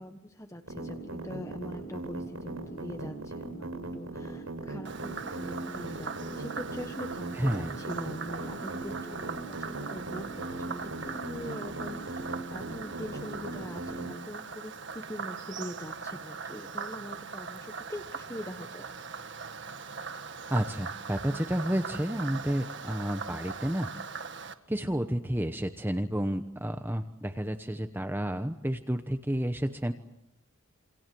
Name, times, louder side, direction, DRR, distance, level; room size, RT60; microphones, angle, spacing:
voice 1, 0.0-18.9, equal, 15° left, 6 dB, 1.3 m, -43 dB
sound 1, 0.7-14.1, right 2 dB, 80° right, 7.3 m, -38 dB
Frog, 4.9-24.5, right 5 dB, 55° right, 1.7 m, -40 dB
voice 2, 7.4-7.8 20.5-23.9 24.7-29.9, equal, 10° right, 7 dB, 1.0 m, -30 dB
28.0 x 25.5 x 7.8 m, 0.80 s
head